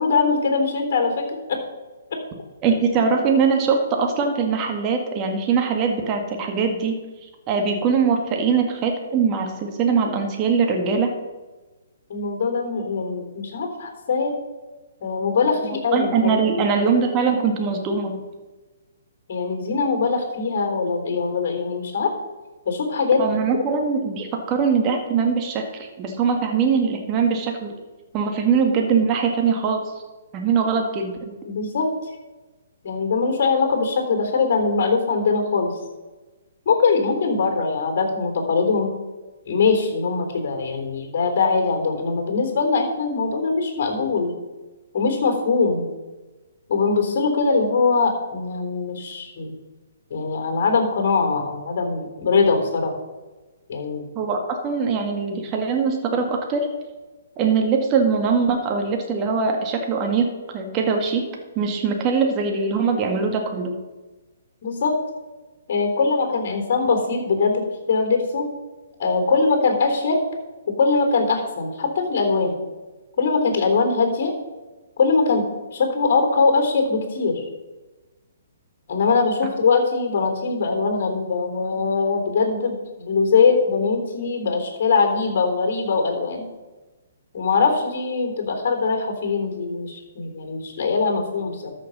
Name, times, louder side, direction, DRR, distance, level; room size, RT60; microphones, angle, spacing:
voice 1, 0.0-1.6 12.1-14.3 15.0-16.4 19.3-22.1 22.7-23.2 23.5-23.6 31.5-31.9 32.8-35.8 36.7-38.9 39.5-44.3 44.9-45.9 46.7-49.5 50.1-53.0 53.7-54.0 64.6-64.9 65.7-68.5 69.0-70.2 70.7-72.5 73.2-74.3 75.0-75.5 75.7-77.3 78.9-86.5 87.3-91.7, left 4 dB, 55° left, 4 dB, 3.7 m, -22 dB
voice 2, 2.6-7.0 7.5-11.1 15.6-18.2 23.2-27.7 28.1-29.8 30.3-31.3 54.2-56.7 57.4-61.3 61.6-63.8, right 5 dB, 30° right, 3 dB, 1.9 m, -22 dB
13.5 x 6.6 x 5.5 m, 1.2 s
hypercardioid pair, 135°, 0 cm